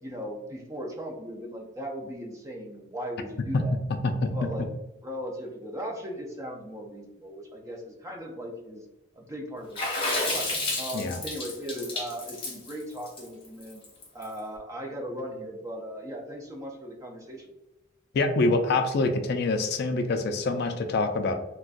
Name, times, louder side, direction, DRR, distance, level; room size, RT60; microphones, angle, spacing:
voice 1, 0.0-3.8 4.3-4.7 5.0-8.9 9.1-10.5 10.8-13.8 14.1-17.5, equal, 15° right, 0 dB, 0.5 m, -38 dB
Water / Splash splatter, 9.8-14.2, left 2 dB, 25° left, 0.9 m, -31 dB
voice 2, 18.1-21.3, left 3 dB, 50° left, 7 dB, 0.3 m, -25 dB
3.8 x 2.3 x 2.4 m, 1.0 s
head